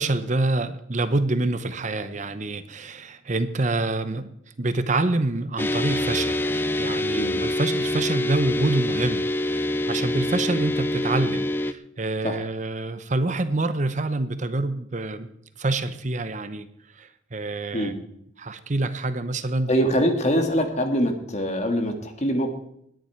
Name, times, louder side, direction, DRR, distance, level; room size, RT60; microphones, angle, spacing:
voice 1, 0.0-4.3 4.6-15.3 15.6-16.7 16.9-17.9 18.4-19.7, right 2 dB, 40° right, 11 dB, 0.8 m, -26 dB
sound 1, 5.6-11.7, left 1 dB, 10° left, 0.5 m, -25 dB
voice 2, 19.7-22.5, equal, 35° left, 5 dB, 1.9 m, -23 dB
20.0 x 10.0 x 4.5 m, 0.73 s
head